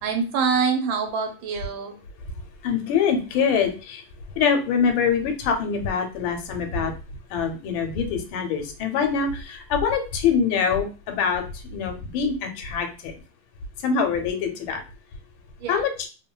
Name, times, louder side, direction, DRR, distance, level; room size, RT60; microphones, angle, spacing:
voice 1, 0.0-1.9 15.6-15.9, right 5 dB, 90° right, 4 dB, 1.4 m, -25 dB
voice 2, 2.6-4.0 4.4-6.9 7.3-13.1 13.8-14.8 15.7-16.1, left 6 dB, 85° left, 5 dB, 1.3 m, -24 dB
3.1 x 2.1 x 2.2 m, 0.34 s
omnidirectional pair, 2.1 m